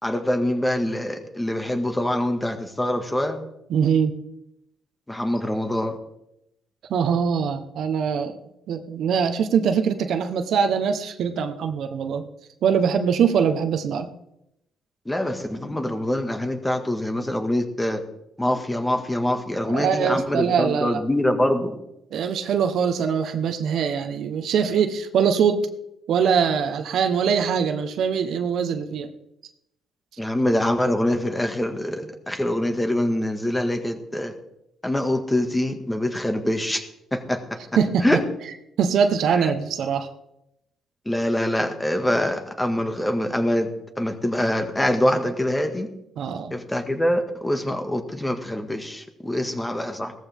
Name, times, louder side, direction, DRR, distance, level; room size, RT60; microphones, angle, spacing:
voice 1, 0.0-3.4 5.1-6.0 15.1-18.0 18.4-21.8 30.2-34.3 34.8-37.6 38.0-38.2 39.3-39.5 41.1-43.7 44.0-45.9 46.5-50.1, left 1 dB, 10° left, 5 dB, 1.9 m, -24 dB
voice 2, 3.7-4.2 6.9-8.4 8.7-12.3 12.6-14.1 19.6-21.0 22.1-25.7 26.1-29.1 37.8-38.0 38.8-40.1 46.2-46.5, right 7 dB, 70° right, 7 dB, 1.2 m, -22 dB
16.5 x 14.0 x 3.7 m, 0.83 s
cardioid pair, 90°, 0 cm